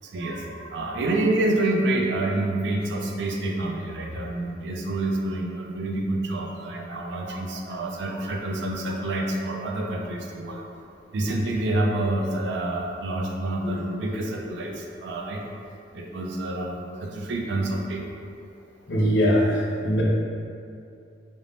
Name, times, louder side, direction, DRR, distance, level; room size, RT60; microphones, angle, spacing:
voice 1, 0.0-10.6 11.1-15.4 15.9-18.0, right 2 dB, 70° right, 0 dB, 0.3 m, -28 dB
voice 2, 18.9-20.0, equal, 70° left, -4 dB, 0.5 m, -22 dB
2.5 x 2.0 x 3.2 m, 2.5 s
head